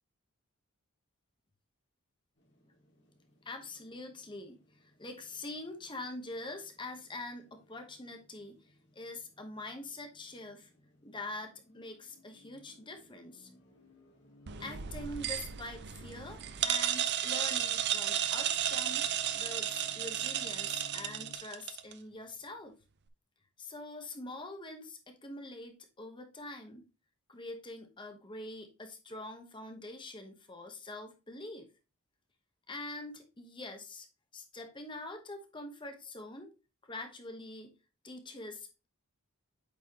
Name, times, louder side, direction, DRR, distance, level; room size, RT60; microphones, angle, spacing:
sound 1, 2.4-21.4, left 1 dB, 50° left, 2.0 m, -61 dB
voice 1, 3.4-8.6 8.9-10.7 11.0-13.5 14.6-19.1 19.3-22.7 23.6-26.9 27.3-31.7 32.7-34.1 34.3-36.5 36.9-37.7 38.0-38.7, left 2 dB, 20° left, 5 dB, 1.0 m, -44 dB
sound 2, 14.5-21.9, right 10 dB, 50° right, 0.5 m, -33 dB
8.4 x 4.1 x 3.0 m, 0.30 s
head